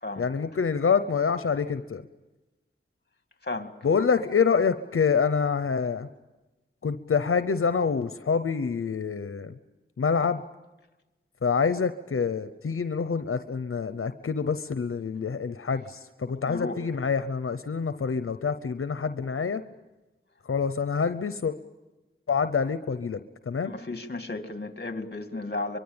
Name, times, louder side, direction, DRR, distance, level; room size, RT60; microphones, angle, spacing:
voice 1, 0.2-2.0 3.8-6.1 6.8-9.5 10.0-10.4 11.4-19.6 20.4-21.5 22.3-23.2 23.5-23.8, left 5 dB, 90° left, 0.8 m, -26 dB
voice 2, 16.5-16.8 23.6-25.8, left 2 dB, 50° left, 2.2 m, -33 dB
24.0 x 23.5 x 8.8 m
wide cardioid pair, 50°, 21 cm